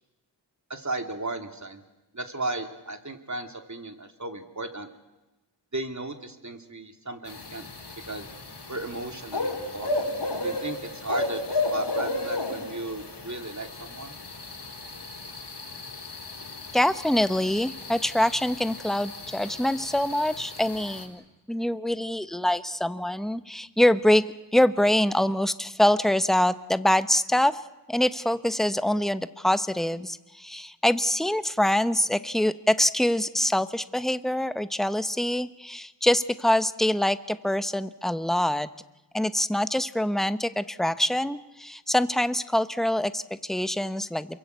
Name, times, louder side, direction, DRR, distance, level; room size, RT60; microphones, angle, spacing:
voice 1, 0.7-1.8 2.1-4.9 5.7-7.6 8.1-8.3 8.7-9.9 10.4-14.1, right 2 dB, 40° right, 5 dB, 3.1 m, -35 dB
sound 1, 7.3-21.1, left 2 dB, 70° left, 4.6 m, -34 dB
voice 2, 16.7-21.2 21.5-24.2 24.5-27.6 27.9-38.7 39.1-44.4, left 1 dB, ahead, 12 dB, 1.0 m, -24 dB
28.0 x 23.0 x 8.3 m, 1.1 s
cardioid pair, 45°, 42 cm